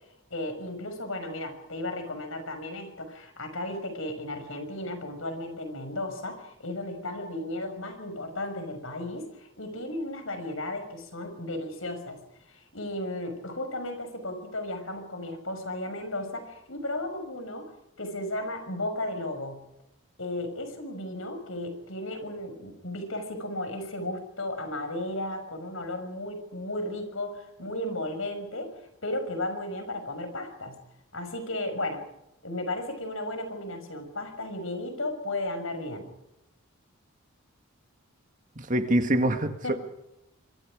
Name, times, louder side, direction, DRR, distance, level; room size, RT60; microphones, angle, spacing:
voice 1, 0.3-12.2 12.4-17.7 18.0-19.6 20.2-30.8 31.1-32.0 32.4-36.1 39.6-39.7, left 1 dB, 70° left, 7 dB, 6.1 m, -34 dB
voice 2, 38.6-39.7, right 1 dB, 35° right, 7 dB, 1.9 m, -25 dB
26.0 x 24.0 x 5.1 m, 0.84 s
head